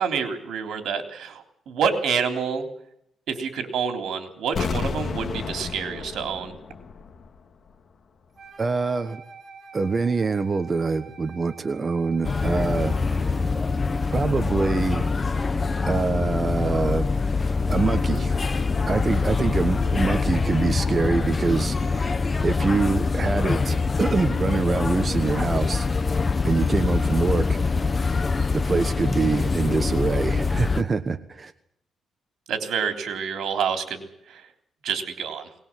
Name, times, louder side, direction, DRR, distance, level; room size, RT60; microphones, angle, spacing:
voice 1, 0.0-2.7 3.3-6.5 32.5-34.4 34.8-35.5, right 6 dB, 80° right, 6 dB, 3.5 m, -28 dB
sound 1, 4.5-7.4 7.7-7.8, left 5 dB, 45° left, 2.0 m, -31 dB
Wind instrument woodwind instrument, 8.4-13.3, right 4 dB, 50° right, 2.1 m, -47 dB
voice 2, 8.6-9.2 9.7-13.6 14.1-15.1 15.8-17.1 17.7-18.3 18.8-25.9 26.4-28.1 28.5-31.5, right 4 dB, 30° right, 8 dB, 1.2 m, -25 dB
sound 2, 12.2-30.8, left 4 dB, 30° left, 1.0 m, -24 dB
21.0 x 19.5 x 7.5 m, 0.75 s
cardioid pair, 120°, 0 cm